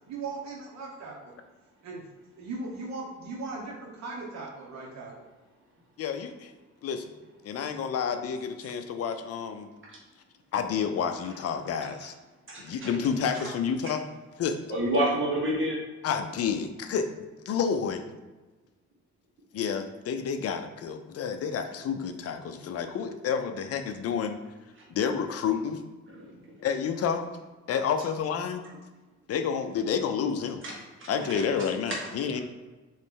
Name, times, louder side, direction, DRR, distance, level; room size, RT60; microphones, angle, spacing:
voice 1, 0.1-1.3 1.8-2.0 2.4-5.1, right 3 dB, 65° right, -2 dB, 1.0 m, -38 dB
voice 2, 6.0-6.5 6.8-7.1 7.4-9.7 10.5-12.1 12.6-14.0 14.4-14.6 16.0-17.1 17.5-18.0 19.5-24.4 24.9-25.8 26.6-27.3 27.7-28.6 29.3-30.6 31.1-32.4, left 7 dB, 55° left, 7 dB, 0.5 m, -29 dB
voice 3, 12.5-12.9 14.7-15.8 26.1-26.3 30.6-30.7 31.3-31.7, right 1 dB, 40° right, -3 dB, 1.4 m, -28 dB
4.0 x 3.1 x 3.6 m, 1.2 s
cardioid pair, 90°, 30 cm